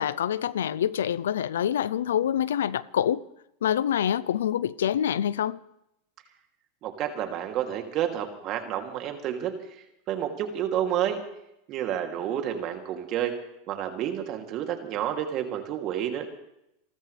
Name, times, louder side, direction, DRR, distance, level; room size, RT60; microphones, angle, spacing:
voice 1, 0.0-3.2 3.6-5.6, left 10 dB, 90° left, 0.6 m, -26 dB
voice 2, 6.8-11.2 11.7-13.4 13.7-16.3, right 10 dB, 45° right, 2.9 m, -30 dB
28.5 x 14.0 x 3.4 m
hypercardioid pair, 120°, 0 cm